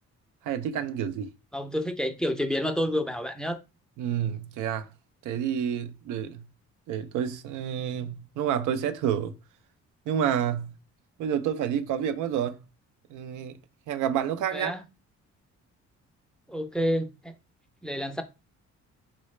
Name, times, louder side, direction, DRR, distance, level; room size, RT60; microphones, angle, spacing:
voice 1, 0.4-1.3 4.0-4.9 5.2-6.5 6.9-9.3 10.1-10.7 11.2-12.6 13.1-13.6 13.9-14.8, right 9 dB, 80° right, 0.5 m, -29 dB
voice 2, 1.5-3.6 14.5-14.8 16.5-17.3 17.8-18.2, equal, 5° left, 0.4 m, -29 dB
3.9 x 2.0 x 3.1 m
cardioid pair, 90°, 30 cm